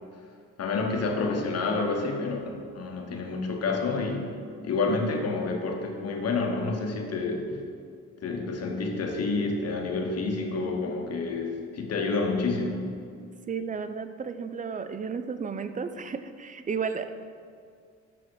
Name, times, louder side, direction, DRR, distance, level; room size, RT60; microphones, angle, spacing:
voice 1, 0.6-4.4 4.6-7.5 8.2-12.9, left 3 dB, 55° left, 2 dB, 1.2 m, -29 dB
voice 2, 13.5-17.1, right 5 dB, 25° right, 10 dB, 0.5 m, -33 dB
7.1 x 5.8 x 4.8 m, 2.2 s
cardioid pair, 90°, 30 cm